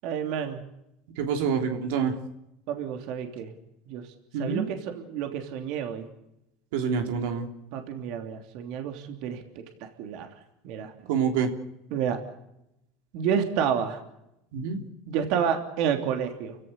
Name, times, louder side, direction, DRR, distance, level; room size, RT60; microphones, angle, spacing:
voice 1, 0.0-0.6 2.7-3.5 3.9-4.1 4.4-6.1 7.7-9.4 9.8-10.3 10.6-10.9 11.9-12.2 13.1-14.0 15.1-16.6, right 8 dB, 60° right, 5 dB, 3.1 m, -29 dB
voice 2, 1.2-2.1 4.3-4.7 6.7-7.5 11.1-11.5 14.5-14.8, right 6 dB, 80° right, 4 dB, 3.3 m, -26 dB
30.0 x 16.5 x 8.2 m, 0.84 s
supercardioid pair, 130°, 0 cm